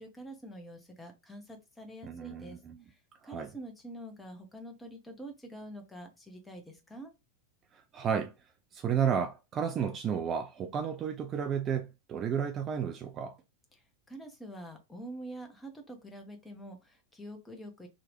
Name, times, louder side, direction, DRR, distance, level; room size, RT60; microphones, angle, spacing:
voice 1, 0.0-2.6 2.9-3.0 3.2-7.1 13.7-13.8 14.1-17.9, right 1 dB, 10° left, 0.8 m, -46 dB
voice 2, 2.0-2.8 3.2-3.5 7.7-8.3 8.7-13.4, right 7 dB, 30° right, 0.4 m, -32 dB
2.9 x 2.4 x 3.0 m
figure-of-eight pair, 90°, 0 cm